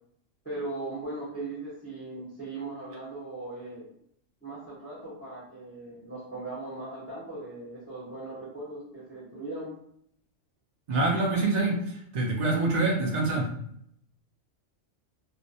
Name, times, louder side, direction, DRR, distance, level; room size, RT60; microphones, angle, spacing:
voice 1, 0.4-3.8 4.4-9.7, right 2 dB, 15° left, -7 dB, 0.6 m, -38 dB
voice 2, 10.9-13.5, right 2 dB, 80° right, -2 dB, 0.4 m, -26 dB
2.3 x 2.1 x 2.6 m, 0.69 s
omnidirectional pair, 1.3 m